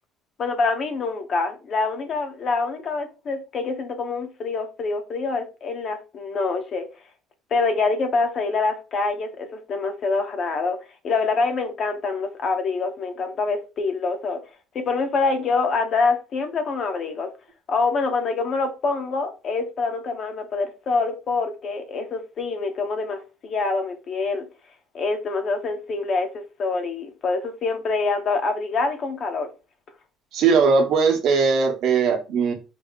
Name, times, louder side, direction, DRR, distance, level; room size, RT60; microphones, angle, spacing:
voice 1, 0.4-6.9 7.5-10.8 11.0-14.4 14.7-17.3 17.7-24.5 24.9-29.5, left 4 dB, 45° left, 0.7 m, -25 dB
voice 2, 30.3-32.5, right 5 dB, 60° right, 0.9 m, -19 dB
4.1 x 2.0 x 3.5 m
cardioid pair, 135°, 0 cm